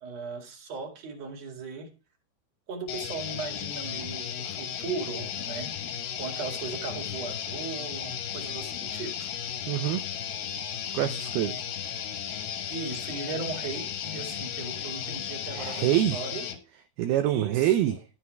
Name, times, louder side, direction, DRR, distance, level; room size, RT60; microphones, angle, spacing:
voice 1, 0.0-1.9 2.7-5.8 6.2-9.3 12.7-16.5 17.3-18.0, right 4 dB, 45° right, 4 dB, 2.5 m, -37 dB
sound 1, 2.9-16.6, left 9 dB, 65° left, 3.1 m, -35 dB
voice 2, 9.7-10.0 10.9-11.6 15.5-16.2 17.0-18.0, right 13 dB, 85° right, 9 dB, 2.2 m, -25 dB
11.5 x 7.1 x 4.6 m, 0.32 s
omnidirectional pair, 5.4 m